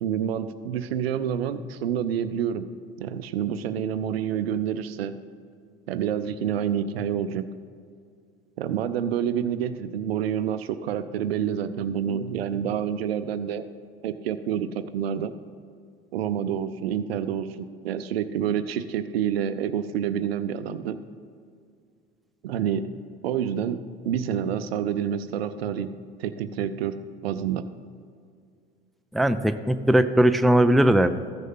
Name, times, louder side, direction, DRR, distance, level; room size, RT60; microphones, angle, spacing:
voice 1, 0.0-2.7 3.0-5.1 5.9-7.4 8.6-13.7 14.0-15.3 16.1-21.0 22.4-22.9 23.2-23.8 24.1-25.9 26.2-27.6, right 9 dB, 80° right, 12 dB, 0.6 m, -28 dB
voice 2, 29.1-31.3, right 1 dB, ahead, 10 dB, 0.4 m, -19 dB
14.5 x 6.3 x 5.6 m, 2.2 s
hypercardioid pair, 65°, 30 cm